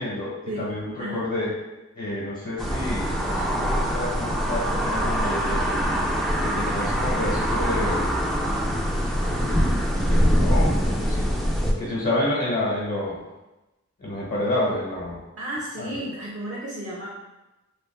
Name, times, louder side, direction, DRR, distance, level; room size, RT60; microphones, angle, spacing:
voice 1, 0.0-1.5 2.0-5.8 6.4-8.1 9.1-9.7 10.0-11.3 11.8-13.2 14.0-15.2 15.8-15.9, left 1 dB, 50° left, -6 dB, 1.0 m, -29 dB
sound 1, 2.6-11.7, equal, ahead, 0.5 m, -23 dB
voice 2, 15.4-17.1, right 1 dB, 50° right, -5 dB, 0.7 m, -32 dB
3.3 x 2.5 x 3.1 m, 1.0 s
wide cardioid pair, 65°, 30 cm